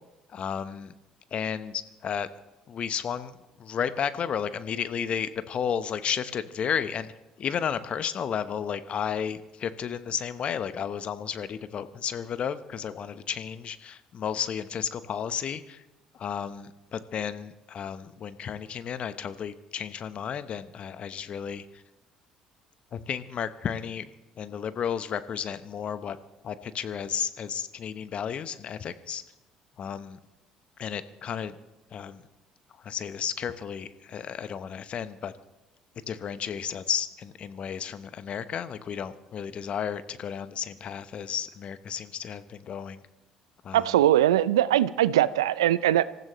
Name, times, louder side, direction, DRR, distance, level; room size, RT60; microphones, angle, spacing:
voice 1, 0.3-0.9 1.3-2.3 2.7-3.3 3.6-7.1 7.4-15.8 16.2-21.6 22.9-24.1 24.4-26.2 26.4-29.2 29.8-30.2 30.8-31.5 31.9-32.2 32.8-35.3 36.1-43.0 43.6-43.8, left 8 dB, 50° left, 12 dB, 1.0 m, -33 dB
voice 2, 43.7-46.0, right 12 dB, 80° right, 18 dB, 0.5 m, -21 dB
26.0 x 15.0 x 3.2 m, 1.0 s
hypercardioid pair, 55°, 3 cm